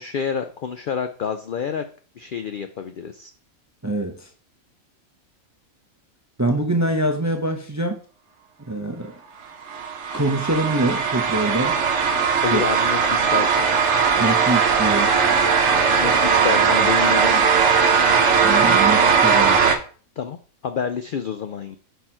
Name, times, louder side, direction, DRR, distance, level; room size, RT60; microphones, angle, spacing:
voice 1, 0.0-1.8 2.2-3.3 12.4-13.6 16.0-17.5 20.2-21.8, left 7 dB, 85° left, 8 dB, 0.4 m, -28 dB
voice 2, 3.8-4.3 6.4-8.0 8.7-9.1 10.1-11.8 12.5-12.6 14.2-15.1 18.4-19.6, right 1 dB, 25° right, 4 dB, 0.4 m, -24 dB
sound 1, 9.7-19.8, right 6 dB, 60° right, 1.0 m, -18 dB
5.6 x 4.3 x 4.4 m, 0.40 s
omnidirectional pair, 1.5 m